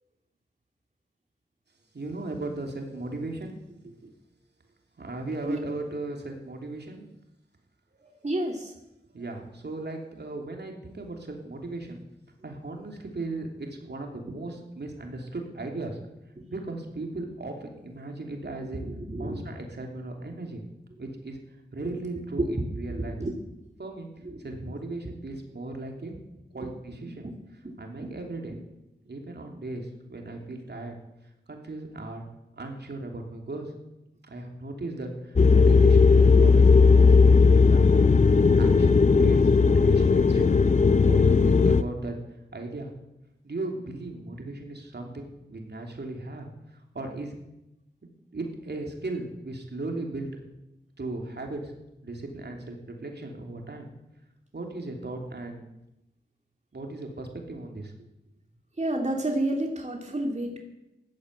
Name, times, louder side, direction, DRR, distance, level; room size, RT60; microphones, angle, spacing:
voice 1, 1.9-3.5 3.8-4.1 5.0-7.1 9.1-12.0 12.4-16.0 16.5-18.8 19.2-20.6 21.0-21.4 21.7-23.2 23.8-24.1 24.4-26.1 26.5-27.3 27.8-28.5 29.1-30.9 31.5-32.2 32.6-33.7 34.2-37.1 37.7-40.5 41.0-42.2 42.5-42.9 43.4-46.5 46.9-47.3 48.3-50.3 51.0-51.7 52.0-53.9 54.5-55.6 56.7-57.9, right 2 dB, 65° right, 2 dB, 3.2 m, -37 dB
voice 2, 8.2-8.7 18.8-19.5 23.2-23.3 24.2-24.4 26.6-26.7 27.2-27.3 27.6-27.7 28.0-28.1 58.8-60.6, right 1 dB, 40° right, 2 dB, 2.7 m, -30 dB
sound 1, 35.4-41.8, left 4 dB, 40° left, 0.6 m, -17 dB
15.0 x 11.5 x 8.3 m, 0.92 s
wide cardioid pair, 55°, 19 cm